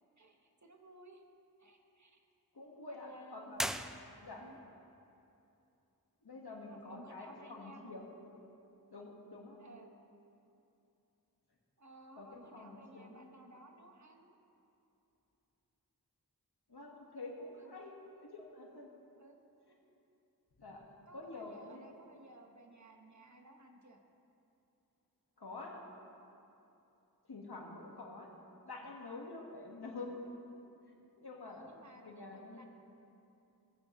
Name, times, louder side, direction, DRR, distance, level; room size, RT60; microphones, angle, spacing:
voice 1, 0.2-1.2 1.6-2.2 2.9-3.7 4.4-4.6 6.7-8.0 9.6-9.9 11.8-14.4 17.5-17.9 19.2-19.4 21.1-24.0 27.9-28.0 31.4-32.7, right 1 dB, 50° right, 3 dB, 1.1 m, -57 dB
voice 2, 2.5-3.7 4.2-4.4 6.2-8.1 8.9-9.6 12.2-13.3 16.7-18.9 20.6-20.8 21.1-21.9 25.4-25.8 27.3-28.3 28.6-30.2 31.2-31.7 32.0-32.7, left 3 dB, 85° left, -1 dB, 1.7 m, -48 dB
sound 1, 3.5-4.6, equal, ahead, 0.4 m, -39 dB
18.5 x 9.3 x 3.1 m, 2.8 s
wide cardioid pair, 45°, 38 cm